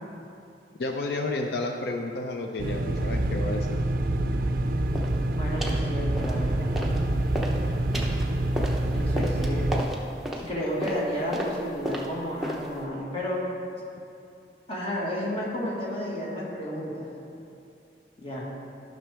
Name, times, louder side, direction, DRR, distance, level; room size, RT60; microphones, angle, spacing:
voice 1, 0.8-3.8, left 2 dB, 65° left, 3 dB, 0.5 m, -31 dB
sound 1, 2.6-9.8, right 1 dB, 50° right, 0.4 m, -26 dB
sound 2, 4.9-5.2 5.6-5.9 6.2-7.0 7.3-12.8, equal, ahead, 0.8 m, -33 dB
voice 2, 5.4-6.7 8.9-9.9 10.3-13.4 14.7-17.1 18.2-18.5, equal, 30° left, -5 dB, 1.7 m, -32 dB
12.0 x 6.1 x 3.4 m, 2.6 s
head